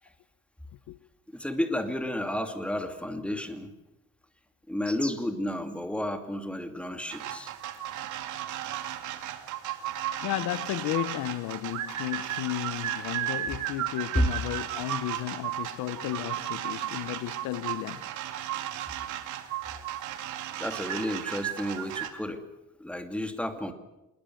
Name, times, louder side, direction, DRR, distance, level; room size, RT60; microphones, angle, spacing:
voice 1, 1.3-3.7 4.7-7.5 14.1-14.3 20.6-22.4 22.8-23.7, equal, 5° left, 2.7 m, -31 dB
sound 1, 7.1-22.1, right 12 dB, 80° right, 2.6 m, -35 dB
voice 2, 10.2-18.1, left 16 dB, 80° left, 0.9 m, -33 dB
26.5 x 21.0 x 7.8 m
cardioid pair, 120°, 30 cm